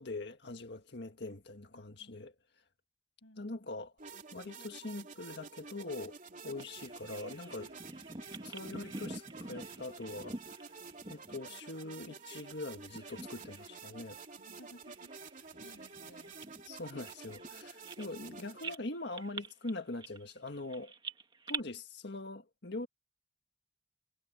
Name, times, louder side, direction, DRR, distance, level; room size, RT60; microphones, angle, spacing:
voice 1, 0.0-2.3 3.4-3.9 4.3-6.2 6.4-7.7 8.4-10.6 11.1-14.2 16.6-20.9 21.5-22.9, left 2 dB, 60° left, 1.8 m, -43 dB
voice 2, 1.7-2.2 3.2-3.7 14.3-16.4, left 1 dB, 80° left, 7.7 m, -59 dB
sound 1, 4.0-18.7, right 4 dB, 45° right, 3.1 m, -50 dB
Bird vocalization bird call bird song, 6.6-12.6 12.8-13.7 14.1-14.3 14.9-18.3 18.6-21.6, right 3 dB, 25° right, 1.8 m, -47 dB
head